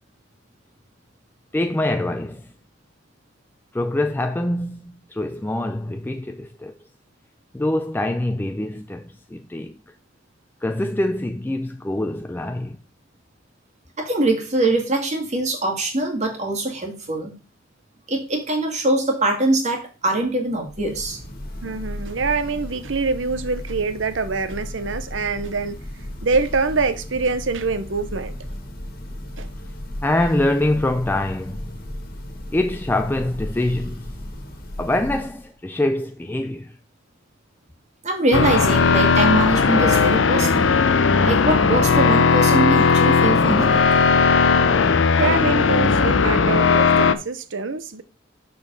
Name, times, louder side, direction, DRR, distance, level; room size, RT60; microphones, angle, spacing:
voice 1, 1.5-2.5 3.7-6.7 7.5-9.8 10.6-12.8 30.0-31.7 32.5-34.1 34.8-36.7, left 1 dB, 10° left, 0.4 m, -24 dB
voice 2, 14.0-17.3 18.1-21.2 38.0-40.8 41.2-43.8, right 2 dB, 40° right, 2.1 m, -23 dB
Church bell, 20.6-35.5, left 1 dB, 50° left, 1.7 m, -35 dB
voice 3, 21.6-25.8 26.2-28.3 29.4-29.5 45.1-48.0, right 4 dB, 70° right, 0.8 m, -24 dB
sound 1, 38.3-47.1, left 5 dB, 75° left, 0.6 m, -17 dB
6.4 x 5.2 x 5.3 m
head